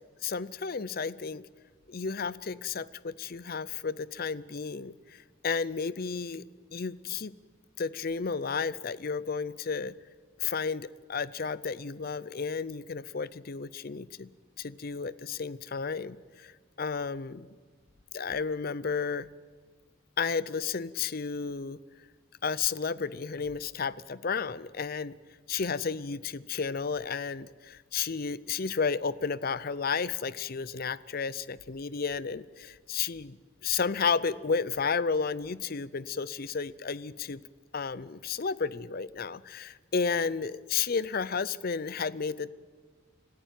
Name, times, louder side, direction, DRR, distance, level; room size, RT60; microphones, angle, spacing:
voice 1, 0.2-1.5 1.9-7.3 7.8-9.9 10.4-14.3 14.6-17.5 18.1-19.3 20.2-21.8 22.4-25.2 25.5-37.4 37.7-42.5, left 5 dB, 45° left, 19 dB, 0.6 m, -32 dB
26.0 x 15.0 x 9.2 m, 1.5 s
head